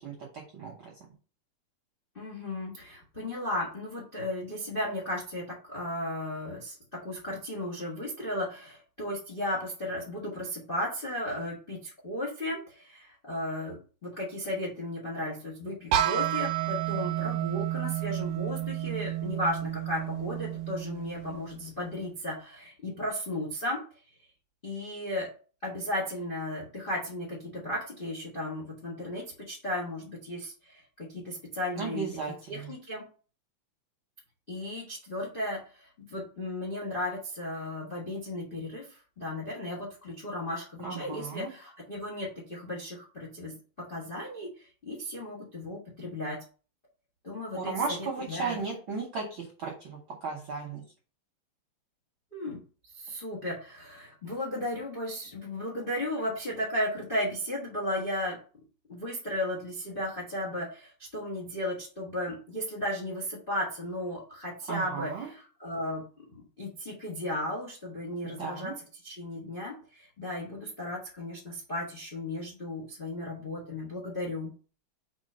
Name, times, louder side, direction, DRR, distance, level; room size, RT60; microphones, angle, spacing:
voice 1, 0.0-0.9 31.8-32.7 40.8-41.5 47.5-50.8 64.7-65.3 68.2-68.8, right 4 dB, 55° right, -1 dB, 1.5 m, -35 dB
voice 2, 2.1-13.8 14.0-23.8 24.6-25.3 25.6-32.0 32.5-33.0 34.5-46.4 47.2-48.6 52.3-52.6 52.9-58.4 58.9-66.0 66.3-68.7 69.0-74.5, left 1 dB, 65° left, -1 dB, 0.5 m, -35 dB
sound 1, 15.9-21.7, right 13 dB, 80° right, 1.6 m, -31 dB
4.4 x 4.0 x 5.4 m, 0.38 s
omnidirectional pair, 3.4 m